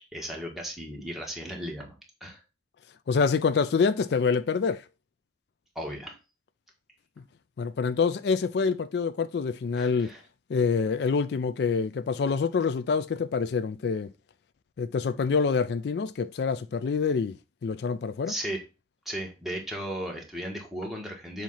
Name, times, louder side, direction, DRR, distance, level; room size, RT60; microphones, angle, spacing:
voice 1, 0.1-2.4 5.7-6.2 9.7-10.2 18.3-18.6 19.0-21.4, equal, ahead, 1.6 m, -36 dB
voice 2, 3.1-4.8 7.6-10.1 10.5-14.1 14.8-17.4 17.6-18.3, left 5 dB, 70° left, 0.4 m, -26 dB
7.4 x 2.8 x 5.6 m
head